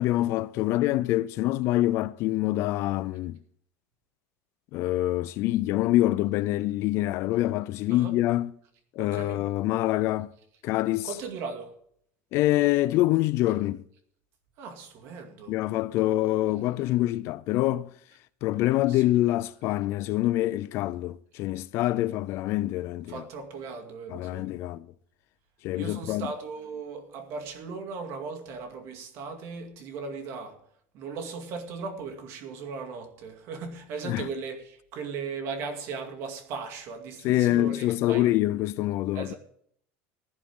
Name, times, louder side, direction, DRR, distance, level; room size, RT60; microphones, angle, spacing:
voice 1, 0.0-3.4 4.7-8.5 9.0-10.3 10.6-11.1 12.3-13.8 15.5-17.9 18.4-23.3 24.1-24.9 25.6-26.3 34.0-34.3 37.2-39.3, left 16 dB, 45° left, 0.4 m, -25 dB
voice 2, 9.0-9.5 11.0-11.7 14.6-15.6 16.0-16.2 18.9-19.0 23.1-24.5 25.7-30.6 30.9-38.3 39.1-39.4, right 5 dB, 45° right, 2.2 m, -38 dB
15.5 x 11.5 x 3.6 m
cardioid pair, 175°, 6 cm